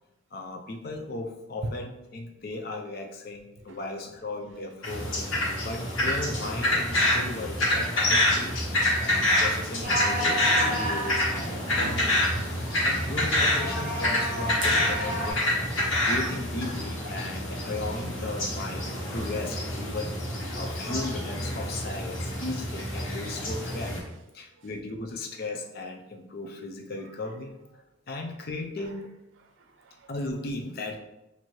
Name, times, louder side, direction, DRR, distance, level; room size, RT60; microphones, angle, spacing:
voice 1, 0.3-5.3 5.6-8.6 9.0-12.4 12.8-15.5 16.0-27.5 28.1-29.1 30.1-31.0, left 2 dB, 50° left, 0.5 m, -36 dB
sound 1, 4.8-24.0, left 1 dB, 80° left, 1.3 m, -27 dB
voice 2, 9.7-10.8 15.3-16.1 16.7-17.2 18.3-18.4 18.9-19.0 24.6-24.7 27.0-27.2 28.8-28.9 29.4-30.2, right 1 dB, 75° right, 0.5 m, -45 dB
sound 2, 9.8-15.3, right 1 dB, 35° right, 1.0 m, -33 dB
4.4 x 2.6 x 3.0 m
head